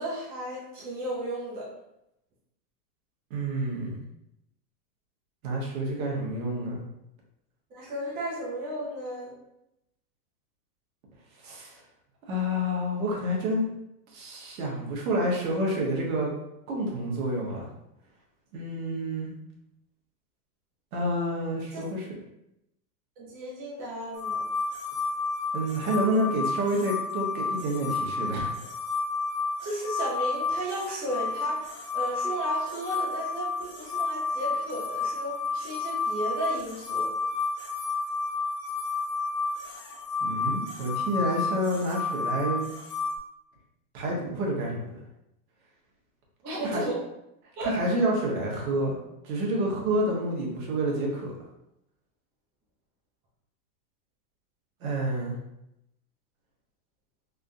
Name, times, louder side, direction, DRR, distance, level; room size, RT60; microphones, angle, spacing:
voice 1, 0.0-1.7 7.7-9.4 21.7-21.9 23.2-24.4 29.6-37.1 46.4-47.0 47.6-47.7, right 1 dB, 20° right, -5 dB, 0.5 m, -34 dB
voice 2, 3.3-4.0 5.4-6.8 11.4-11.8 12.3-13.7 14.1-16.3 16.7-17.7 18.5-19.3 20.9-22.1 25.5-28.5 40.2-42.7 43.9-45.0 46.6-46.8 47.6-48.9 49.2-51.3 54.8-55.4, right 1 dB, 65° right, -2 dB, 1.2 m, -28 dB
sound 1, 24.1-43.2, left 4 dB, 80° left, 0.9 m, -31 dB
3.6 x 2.3 x 2.6 m, 0.84 s
supercardioid pair, 140°, 46 cm